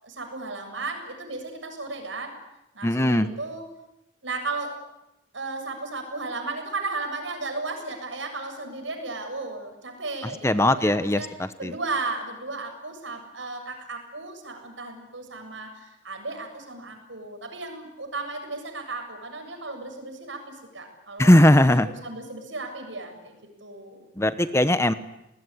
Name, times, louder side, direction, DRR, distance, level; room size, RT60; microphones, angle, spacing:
voice 1, 0.0-2.3 2.7-3.7 4.2-4.8 5.3-11.3 11.6-23.4 23.6-24.0, right 3 dB, 80° right, 5 dB, 7.5 m, -35 dB
voice 2, 2.8-3.3 10.4-11.2 11.6-11.7 21.2-21.9 24.2-24.9, left 1 dB, 15° left, 12 dB, 1.0 m, -18 dB
29.0 x 20.5 x 9.8 m, 0.90 s
head